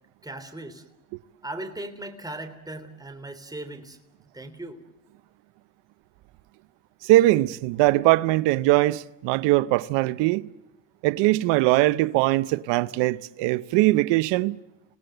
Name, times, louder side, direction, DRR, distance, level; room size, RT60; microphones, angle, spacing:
voice 1, 0.2-0.8 1.4-4.0 4.3-4.8, right 2 dB, 10° right, 3.5 m, -38 dB
voice 2, 7.0-10.4 11.0-14.6, right 18 dB, 80° right, 0.8 m, -21 dB
28.5 x 18.5 x 7.8 m
supercardioid pair, 75°, 42 cm